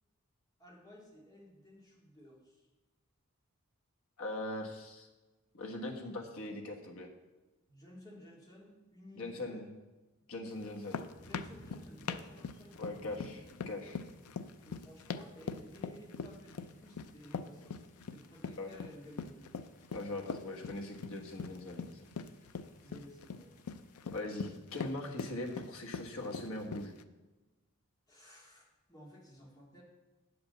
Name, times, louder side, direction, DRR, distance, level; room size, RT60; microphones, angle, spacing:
voice 1, 0.6-2.7 7.7-9.6 11.2-13.4 14.6-17.8 18.1-19.4 22.8-23.6 28.1-29.8, equal, 20° left, -4 dB, 2.5 m, -55 dB
voice 2, 4.2-5.1 5.5-7.1 9.2-9.7 10.3-11.0 12.8-14.0 18.6-18.7 19.9-22.0 24.1-26.9, left 2 dB, 70° left, 1 dB, 1.4 m, -41 dB
sound 1, 10.5-24.2, equal, 40° left, 1.1 m, -60 dB
sound 2, 10.6-27.0, left 5 dB, 90° left, 0.5 m, -42 dB
8.6 x 5.2 x 7.2 m, 1.1 s
head